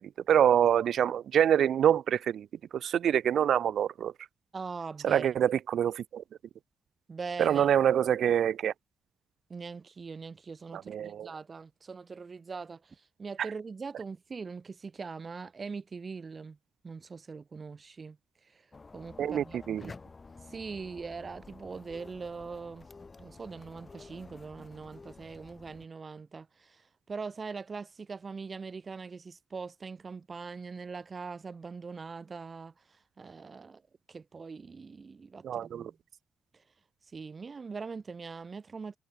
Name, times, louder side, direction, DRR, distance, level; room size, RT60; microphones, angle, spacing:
voice 1, 0.0-2.5 2.7-4.1 5.0-6.2 7.4-8.7 10.7-11.3 19.2-19.8 35.4-35.9, right 9 dB, 60° right, 1.7 m, -26 dB
voice 2, 4.5-5.3 7.1-7.7 9.5-16.6 16.8-18.2 18.4-18.7 18.9-19.9 20.5-22.9 23.2-33.8 34.1-35.9 36.5-36.6 37.1-39.0, right 4 dB, 30° right, 6.6 m, -42 dB
sound 1, 18.7-25.9, left 4 dB, 20° left, 4.7 m, -51 dB
wide cardioid pair, 155°, 0 cm